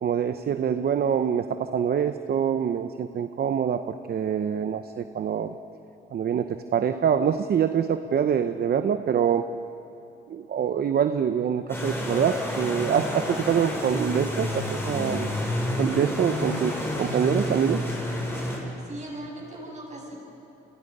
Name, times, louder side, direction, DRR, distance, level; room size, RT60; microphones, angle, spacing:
voice 1, 0.0-5.5 6.1-9.5 10.3-15.3 15.8-17.9, right 8 dB, 50° right, 9 dB, 0.8 m, -25 dB
sound 1, 11.7-18.6, left 1 dB, 10° left, 6.4 m, -29 dB
voice 2, 18.8-20.1, right 1 dB, 35° right, -1 dB, 7.7 m, -39 dB
30.0 x 22.5 x 5.5 m, 3.0 s
cardioid pair, 90°, 20 cm